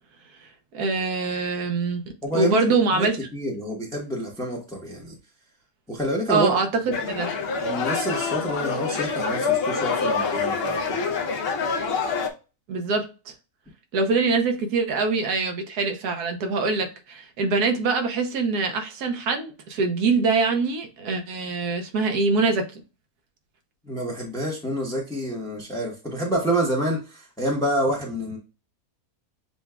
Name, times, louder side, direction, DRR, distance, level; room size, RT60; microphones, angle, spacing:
voice 1, 0.7-2.0 2.3-3.2 6.3-6.7 7.1-7.3 12.7-13.3 13.9-22.8, right 4 dB, 80° right, 1.4 m, -24 dB
voice 2, 2.2-3.1 3.3-5.1 5.9-6.6 6.8-6.9 7.4-11.1 23.8-28.4, equal, 5° left, 0.7 m, -28 dB
sound 1, 6.9-12.3, left 5 dB, 55° left, 0.7 m, -26 dB
6.9 x 2.3 x 2.2 m
omnidirectional pair, 1.7 m